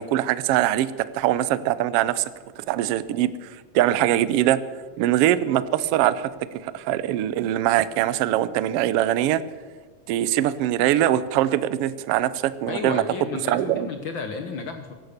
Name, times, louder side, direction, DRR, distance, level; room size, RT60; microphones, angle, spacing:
voice 1, 0.0-2.2 2.6-4.6 5.0-9.4 10.1-13.0 13.5-13.9, right 13 dB, 85° right, 16 dB, 1.3 m, -22 dB
voice 2, 12.7-14.9, left 4 dB, 65° left, 7 dB, 1.2 m, -32 dB
16.0 x 12.5 x 6.6 m, 1.5 s
omnidirectional pair, 3.4 m